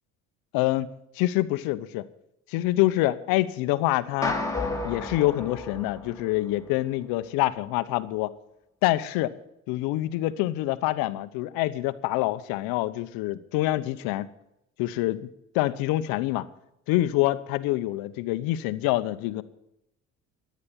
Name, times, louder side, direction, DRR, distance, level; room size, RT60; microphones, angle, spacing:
voice 1, 0.5-0.9 1.2-2.1 2.5-4.4 4.8-8.3 8.8-9.3 9.7-14.3 14.8-15.3 15.5-16.5 16.9-19.4, left 16 dB, 80° left, 14 dB, 1.0 m, -26 dB
sound 1, 4.2-6.7, left 2 dB, 10° left, 3.3 m, -32 dB
14.0 x 9.6 x 8.7 m, 0.81 s
supercardioid pair, 85°, 35 cm